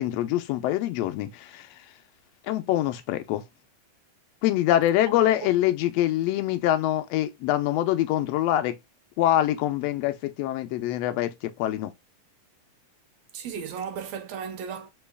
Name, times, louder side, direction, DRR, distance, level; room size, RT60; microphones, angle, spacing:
voice 1, 0.0-1.7 2.4-3.4 4.4-8.7 9.2-11.9, left 13 dB, 80° left, 1.6 m, -24 dB
voice 2, 5.1-5.5 13.3-14.9, right 7 dB, 75° right, 1.7 m, -35 dB
4.5 x 3.0 x 3.4 m
omnidirectional pair, 3.4 m